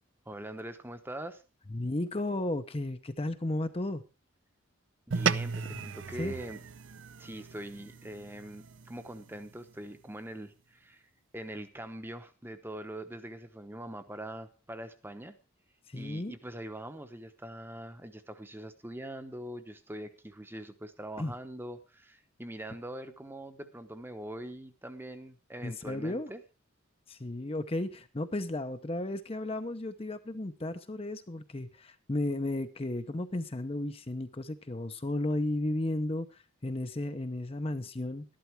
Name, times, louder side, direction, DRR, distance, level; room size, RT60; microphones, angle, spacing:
voice 1, 0.3-1.4 5.1-6.6 7.2-11.0 11.3-15.3 15.9-26.4, right 1 dB, 10° right, 9 dB, 0.9 m, -43 dB
voice 2, 1.7-4.0 5.7-5.8 6.2-6.3 15.9-16.3 21.2-21.3 25.6-26.3 27.1-38.2, left 1 dB, 25° left, 9 dB, 0.7 m, -34 dB
sound 1, 5.1-9.7, right 5 dB, 60° right, 0.5 m, -35 dB
13.0 x 11.5 x 4.6 m, 0.33 s
head